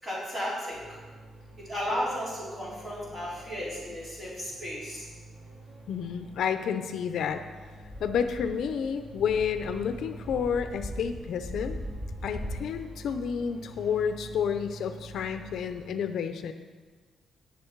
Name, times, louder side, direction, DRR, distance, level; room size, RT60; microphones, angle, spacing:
voice 1, 0.0-1.0 1.6-5.1, equal, 20° right, -7 dB, 4.2 m, -34 dB
sound 1, 0.7-15.9, right 1 dB, 50° right, 3.3 m, -47 dB
voice 2, 5.9-7.4 8.0-11.8 12.2-16.5, left 7 dB, 65° left, 9 dB, 0.6 m, -30 dB
sound 2, 7.7-12.6, equal, ahead, 3.7 m, -40 dB
18.5 x 6.4 x 4.6 m, 1.4 s
cardioid pair, 170°, 0 cm